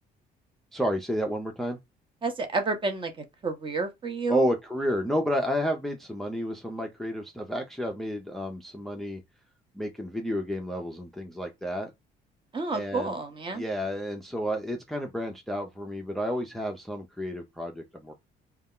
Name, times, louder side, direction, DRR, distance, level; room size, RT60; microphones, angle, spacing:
voice 1, 0.7-1.8 4.3-9.2 9.7-11.9 12.7-13.1 13.5-18.1, equal, ahead, 0.4 m, -31 dB
voice 2, 2.2-4.5 12.5-13.6, right 3 dB, 30° right, 0.6 m, -30 dB
2.3 x 2.0 x 3.6 m
cardioid pair, 110°, 17 cm